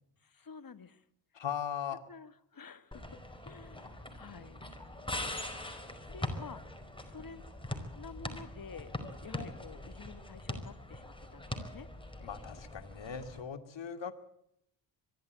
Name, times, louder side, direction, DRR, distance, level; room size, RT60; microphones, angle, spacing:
voice 1, 0.2-1.0 2.1-4.7 6.1-6.6 7.0-7.4 7.9-8.9 9.2-11.9 14.1-14.2, left 5 dB, 40° left, 12 dB, 1.7 m, -50 dB
voice 2, 1.3-2.0 12.2-14.1, left 8 dB, 60° left, 8 dB, 2.5 m, -39 dB
sound 1, 2.9-13.4, left 1 dB, 10° left, 4.8 m, -42 dB
23.0 x 13.0 x 9.0 m, 0.76 s
supercardioid pair, 45°, 50 cm